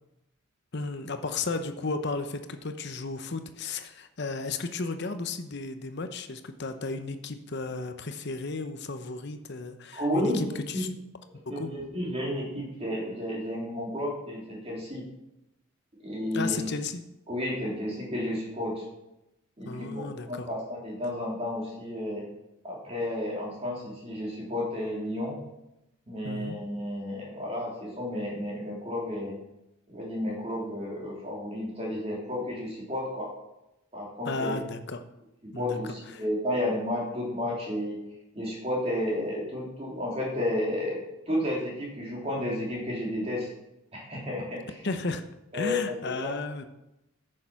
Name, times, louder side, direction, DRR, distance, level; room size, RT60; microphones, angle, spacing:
voice 1, 0.7-10.9 11.6-11.7 16.3-17.0 19.7-20.5 26.2-26.6 34.3-35.0 35.5-36.2 44.8-45.2 45.5-46.7, left 3 dB, 50° left, 8 dB, 0.8 m, -34 dB
voice 2, 9.9-10.8 11.5-15.0 16.0-16.7 17.3-18.8 19.6-22.3 22.6-25.4 26.1-29.4 29.9-33.3 33.9-34.6 35.4-38.0 38.3-43.5 43.9-44.8 45.5-46.4, left 1 dB, 25° right, -3 dB, 3.0 m, -32 dB
9.7 x 6.6 x 6.0 m, 0.90 s
head